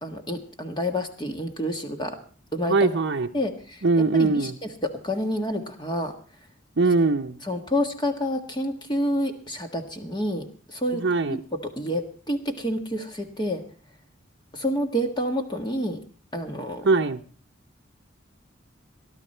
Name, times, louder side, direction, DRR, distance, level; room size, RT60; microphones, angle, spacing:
voice 1, 0.0-2.2 2.5-2.9 3.3-6.1 7.4-13.6 14.5-16.0 16.3-16.9, equal, 20° left, 1.6 m, -29 dB
voice 2, 2.7-3.3 3.8-4.5 6.8-7.4 11.0-11.4 16.8-17.2, right 3 dB, 65° right, 0.7 m, -21 dB
20.0 x 11.5 x 4.4 m
head